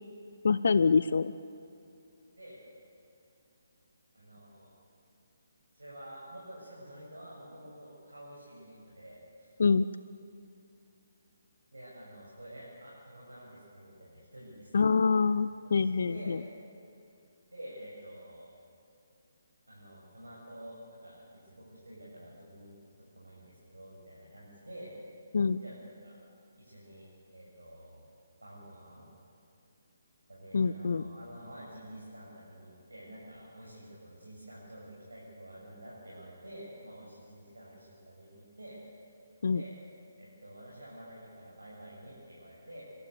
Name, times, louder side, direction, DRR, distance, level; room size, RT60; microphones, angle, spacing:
voice 1, 0.4-1.3 9.6-9.9 14.7-16.4 25.3-25.6 30.5-31.0 39.4-39.6, left 5 dB, 55° left, 15 dB, 0.6 m, -25 dB
voice 2, 4.1-4.7 5.7-9.5 11.7-15.3 15.6-16.4 17.5-18.5 19.7-22.7 23.0-24.9 25.5-25.8 26.0-26.2 26.6-28.1 28.4-29.1 30.3-38.8 39.5-39.7 40.2-42.8, right 1 dB, 75° right, -5 dB, 7.5 m, -49 dB
25.5 x 24.0 x 8.5 m, 2.7 s
figure-of-eight pair, 140°, 0 cm